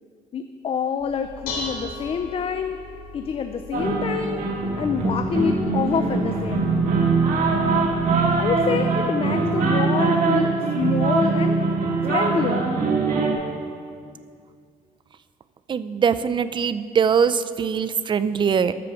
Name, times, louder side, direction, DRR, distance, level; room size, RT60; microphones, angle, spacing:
voice 1, 0.3-2.8 3.1-6.9 8.4-11.6 12.0-12.7, left 6 dB, 40° left, 8 dB, 0.4 m, -27 dB
Dishes pots and pans, 1.0-8.4, left 3 dB, 90° left, 2.7 m, -39 dB
sound 1, 3.7-13.3, right 3 dB, 60° right, 1.7 m, -22 dB
voice 2, 15.7-18.7, right 7 dB, 30° right, 14 dB, 0.4 m, -22 dB
13.5 x 4.9 x 6.1 m, 2.2 s
cardioid pair, 110°, 15 cm